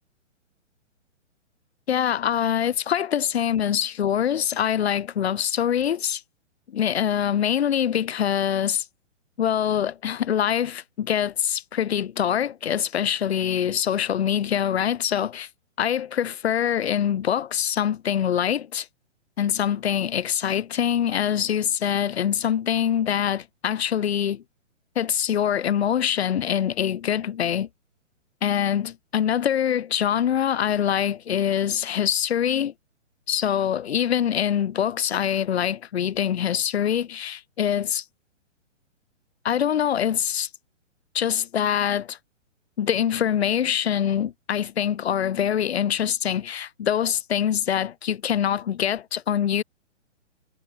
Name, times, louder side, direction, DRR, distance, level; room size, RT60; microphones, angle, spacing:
voice 1, 1.9-6.2 6.7-8.8 9.4-15.5 15.8-18.9 19.4-24.4 24.9-27.7 28.4-32.7 33.3-38.0 39.4-40.5 41.1-42.2 42.8-49.6, left 9 dB, 55° left, 6.8 m, -24 dB
figure-of-eight pair, 130°, 37 cm